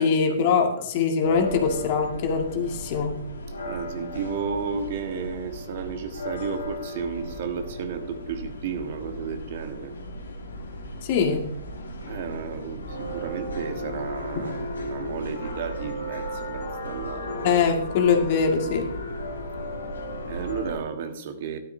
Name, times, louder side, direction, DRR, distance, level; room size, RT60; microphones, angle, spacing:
voice 1, 0.0-3.1 11.0-11.4 14.4-14.5 17.4-18.9, left 6 dB, 45° left, 3 dB, 2.0 m, -22 dB
sound 1, 1.2-20.8, left 1 dB, 75° left, 2.4 m, -35 dB
voice 2, 3.7-9.9 12.1-17.6 20.2-21.6, right 6 dB, 50° right, 7 dB, 1.4 m, -33 dB
13.0 x 12.5 x 2.7 m, 0.70 s
figure-of-eight pair, 115°, 0 cm